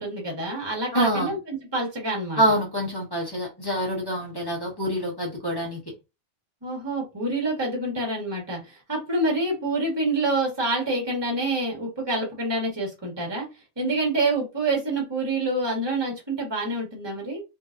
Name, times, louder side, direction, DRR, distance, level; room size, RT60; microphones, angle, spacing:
voice 1, 0.0-2.4 6.6-13.5 13.8-17.4, right 2 dB, 20° right, 1.4 m, -27 dB
voice 2, 0.9-1.3 2.4-5.8, equal, 20° left, 1.3 m, -25 dB
3.8 x 2.8 x 2.5 m
omnidirectional pair, 1.2 m